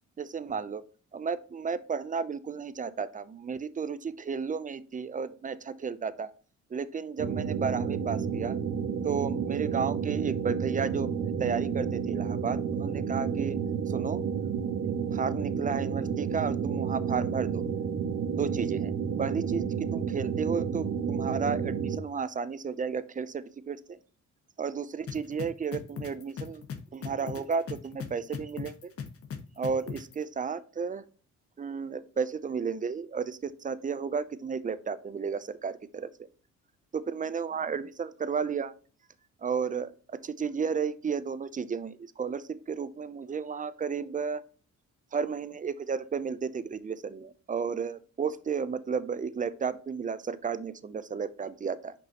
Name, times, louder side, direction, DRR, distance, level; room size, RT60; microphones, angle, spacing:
voice 1, 0.2-0.8 1.1-6.3 6.7-8.6 9.0-13.6 13.9-14.2 14.8-17.6 18.3-18.9 19.2-24.0 24.6-26.6 26.9-28.9 29.6-31.0 31.6-36.3 36.9-38.7 39.4-39.9 40.2-44.4 45.1-51.9, right 6 dB, 25° right, 14 dB, 0.5 m, -33 dB
sound 1, 7.2-22.0, right 7 dB, 55° right, 1.2 m, -31 dB
sound 2, 25.1-30.1, left 7 dB, 50° left, 1.2 m, -37 dB
6.3 x 5.3 x 2.9 m, 0.40 s
cardioid pair, 90°, 30 cm